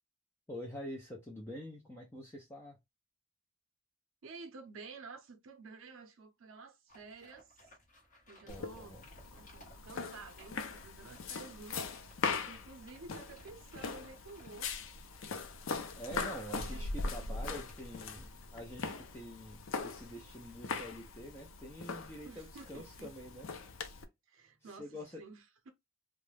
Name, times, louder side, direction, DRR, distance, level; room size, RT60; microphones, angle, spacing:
voice 1, 0.5-2.8 8.4-9.1 16.0-23.5 24.6-25.2, equal, 10° left, 0.4 m, -46 dB
voice 2, 4.2-7.8 8.3-9.0 9.3-14.7 16.7-17.0 17.3-17.4 22.2-23.1 24.3-25.7, right 4 dB, 70° right, 0.5 m, -52 dB
sound 1, 6.9-19.2, left 1 dB, 35° left, 1.0 m, -62 dB
sound 2, 8.5-24.1, left 4 dB, 65° left, 0.4 m, -41 dB
2.3 x 2.1 x 3.2 m
head